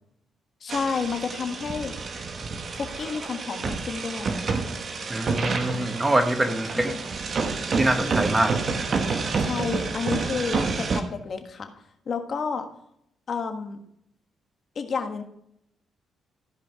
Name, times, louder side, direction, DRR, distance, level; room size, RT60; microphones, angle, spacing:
voice 1, 0.6-2.0 2.7-4.4 6.8-7.0 9.4-11.7 12.1-12.7 13.3-13.8 14.7-15.2, left 5 dB, 50° left, 6 dB, 1.5 m, -30 dB
sound 1, 0.7-11.0, right 4 dB, 50° right, 1.2 m, -29 dB
voice 2, 5.1-6.9 7.7-8.5, right 1 dB, 15° right, 7 dB, 1.1 m, -24 dB
14.0 x 5.2 x 4.9 m, 0.75 s
cardioid pair, 85°, 0 cm